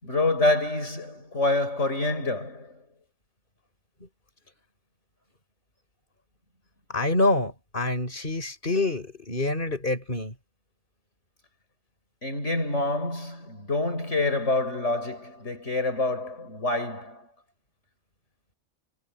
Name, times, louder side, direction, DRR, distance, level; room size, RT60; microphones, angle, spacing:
voice 1, 0.0-2.8 12.2-17.3, left 2 dB, 70° left, 6.5 m, -27 dB
voice 2, 6.9-10.3, left 2 dB, 45° left, 6.2 m, -26 dB
omnidirectional pair, 1.3 m